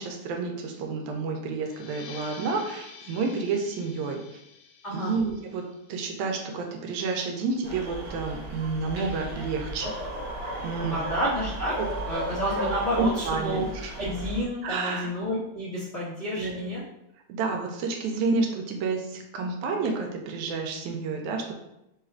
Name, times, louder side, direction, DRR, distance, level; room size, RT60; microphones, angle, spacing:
voice 1, 0.0-4.2 4.9-5.6 5.9-9.9 10.6-11.0 11.8-11.9 13.0-13.9 14.6-15.1 16.4-16.8 17.3-21.5, right 4 dB, 90° right, 2 dB, 2.0 m, -30 dB
sound 1, 1.6-6.8, left 5 dB, 90° left, 2.1 m, -49 dB
voice 2, 4.8-5.1 10.9-11.8 12.1-13.6 13.9-16.8, equal, 65° left, -10 dB, 0.6 m, -30 dB
sound 2, 7.6-14.4, right 1 dB, 60° right, 0.9 m, -35 dB
4.8 x 2.4 x 4.4 m, 0.88 s
omnidirectional pair, 3.3 m